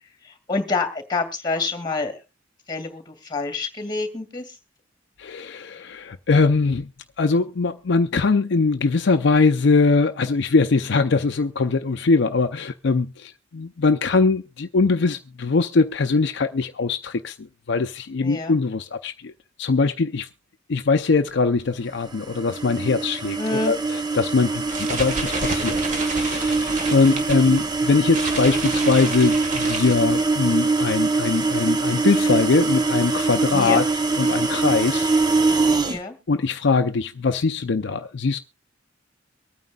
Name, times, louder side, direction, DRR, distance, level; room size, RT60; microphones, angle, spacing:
voice 1, 0.5-2.2 2.7-4.5 18.2-18.6 23.4-23.7 33.5-33.8 35.8-36.2, left 3 dB, 25° left, 2.2 m, -27 dB
voice 2, 5.2-6.9 7.2-19.3 19.6-20.3 20.7-23.8 24.1-25.8 26.1-33.8 34.2-35.1 36.3-38.4, left 4 dB, 65° left, 0.5 m, -21 dB
sound 1, 22.1-36.0, right 3 dB, 25° right, 0.8 m, -23 dB
sound 2, 24.5-30.5, right 2 dB, 40° right, 1.7 m, -31 dB
23.5 x 9.3 x 2.4 m
head